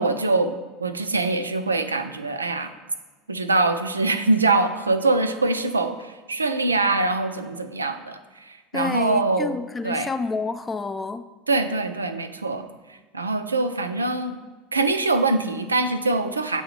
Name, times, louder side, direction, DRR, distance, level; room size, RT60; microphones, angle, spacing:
voice 1, 0.0-2.7 3.3-8.2 8.5-9.5 9.8-10.1 11.5-12.7 13.1-14.4 14.7-16.6, right 3 dB, 85° right, 9 dB, 0.3 m, -23 dB
voice 2, 8.7-11.3, left 4 dB, 20° left, 11 dB, 0.3 m, -29 dB
7.8 x 2.7 x 4.5 m, 1.3 s
figure-of-eight pair, 75°, 0 cm